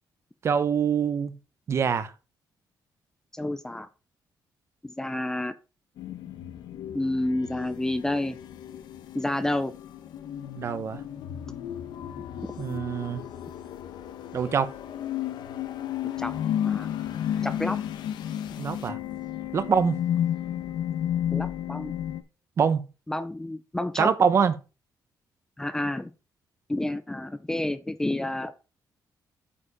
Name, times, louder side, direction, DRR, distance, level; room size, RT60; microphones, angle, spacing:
voice 1, 0.4-1.3 1.7-2.1 10.6-11.0 12.6-13.2 14.3-14.7 18.6-19.0 19.5-20.0 22.6-22.8 24.0-24.5, right 6 dB, 40° right, 0.7 m, -24 dB
voice 2, 3.3-3.9 4.8-5.5 6.9-8.4 9.1-9.7 12.4-12.5 16.2-16.4 16.6-16.9 17.4-17.8 21.3-21.9 23.1-24.1 25.6-26.1 26.7-28.5, left 1 dB, 10° left, 0.5 m, -29 dB
sound 1, 6.0-22.2, left 10 dB, 85° left, 1.0 m, -33 dB
8.6 x 4.9 x 5.0 m
cardioid pair, 175°, 7 cm